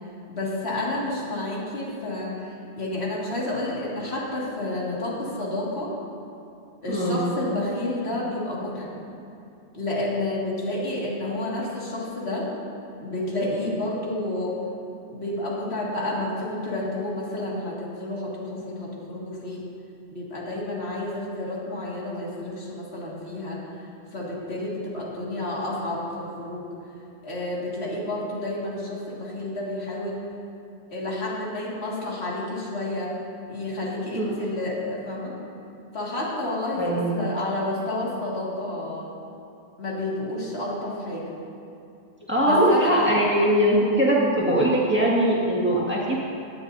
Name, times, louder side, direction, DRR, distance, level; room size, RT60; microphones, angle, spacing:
voice 1, 0.3-5.9 6.8-8.9 9.7-12.5 13.0-14.6 15.1-19.7 20.1-23.6 24.1-26.6 27.2-30.2 30.9-33.1 33.5-35.3 35.9-39.1 39.8-41.3 42.4-43.2, left 1 dB, 80° left, -5 dB, 2.4 m, -30 dB
voice 2, 6.9-7.2 34.1-34.3 36.8-37.2 42.3-46.2, right 1 dB, 10° right, -6 dB, 1.8 m, -21 dB
17.5 x 9.9 x 2.7 m, 2.7 s
omnidirectional pair, 1.1 m